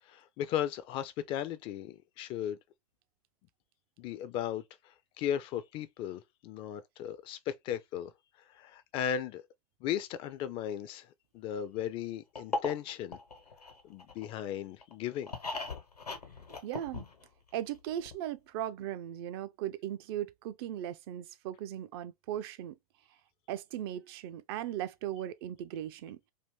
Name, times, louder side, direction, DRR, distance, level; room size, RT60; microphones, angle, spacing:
voice 1, 0.1-2.6 4.0-8.1 8.5-9.4 9.8-11.1 11.3-13.2 13.8-15.3, left 10 dB, 30° left, 0.3 m, -36 dB
sound 1, 12.3-14.4 14.8-17.5 17.7-17.8 18.0-18.1, left 3 dB, 85° left, 1.1 m, -39 dB
voice 2, 16.6-17.0 17.5-22.8 23.5-26.2, right 11 dB, 40° right, 0.4 m, -38 dB
2.7 x 2.6 x 3.4 m
figure-of-eight pair, 95°, 19 cm